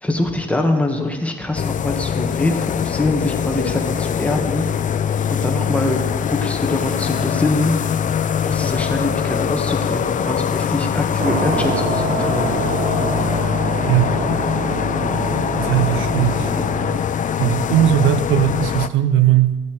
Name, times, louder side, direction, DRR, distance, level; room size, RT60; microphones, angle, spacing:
voice 1, 0.0-4.8 5.3-6.0 6.3-7.9 8.4-12.6, left 2 dB, 5° left, 2 dB, 1.5 m, -23 dB
sound 1, 1.6-18.9, left 8 dB, 40° left, 0.4 m, -22 dB
sound 2, 11.2-17.0, right 5 dB, 45° right, 0.8 m, -26 dB
voice 2, 15.5-16.5 17.4-19.6, right 12 dB, 85° right, 10 dB, 0.7 m, -18 dB
15.0 x 8.3 x 3.2 m, 1.2 s
cardioid pair, 90°, 20 cm